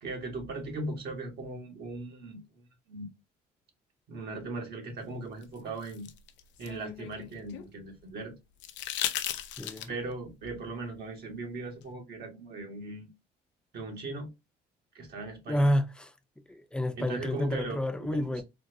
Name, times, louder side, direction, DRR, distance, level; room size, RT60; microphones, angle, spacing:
voice 1, 0.0-3.1 4.1-6.1 6.6-8.3 9.9-13.1 13.7-14.3 14.9-15.7 17.0-18.4, right 2 dB, 60° right, 1.2 m, -39 dB
sound 1, 5.4-7.7 8.6-10.1 11.8-11.9, left 11 dB, 75° left, 0.5 m, -36 dB
voice 2, 9.6-9.9 15.5-16.1 16.5-18.4, equal, 5° left, 0.6 m, -29 dB
4.0 x 2.1 x 2.5 m
supercardioid pair, 80°, 19 cm